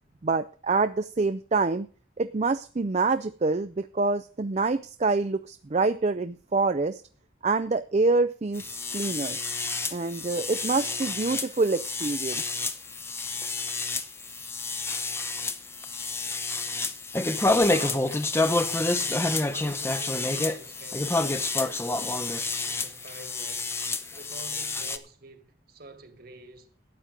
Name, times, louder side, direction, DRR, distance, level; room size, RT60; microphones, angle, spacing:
voice 1, 0.2-1.9 2.2-7.0 7.4-9.4 9.9-12.6, right 3 dB, 35° right, 0.4 m, -26 dB
sound 1, 8.5-25.0, left 2 dB, 10° left, 0.7 m, -29 dB
voice 2, 17.5-22.2 22.7-23.7 24.1-26.7, right 2 dB, 50° right, 1.9 m, -47 dB
13.0 x 9.0 x 5.1 m
head